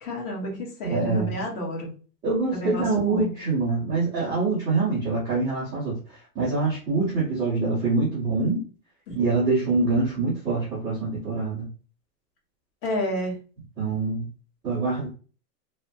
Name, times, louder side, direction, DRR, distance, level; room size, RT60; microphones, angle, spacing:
voice 1, 0.0-1.9 2.5-3.3 9.1-9.2 12.8-13.3, equal, 45° left, -2 dB, 1.5 m, -30 dB
voice 2, 0.8-1.4 2.2-5.9 6.3-8.6 9.1-11.7 13.8-14.3 14.6-15.1, right 3 dB, 10° right, -11 dB, 0.4 m, -25 dB
3.1 x 2.1 x 2.7 m, 0.37 s
hypercardioid pair, 140°, 48 cm